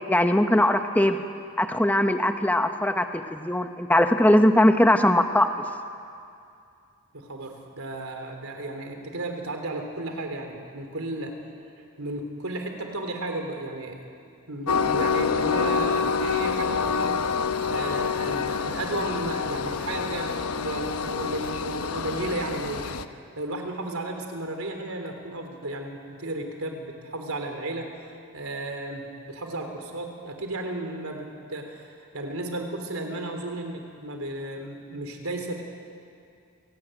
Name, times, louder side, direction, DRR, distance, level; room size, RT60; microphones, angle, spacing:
voice 1, 0.1-1.2 1.6-5.5, left 1 dB, 5° left, 6 dB, 1.1 m, -20 dB
voice 2, 7.1-11.4 12.0-14.1 14.5-17.2 17.7-23.0 23.4-27.9 28.3-31.9 32.1-35.6, right 2 dB, 75° right, 4 dB, 3.5 m, -34 dB
Train, 14.7-23.0, left 5 dB, 90° left, 1.0 m, -27 dB
27.5 x 17.5 x 9.1 m, 2.4 s
head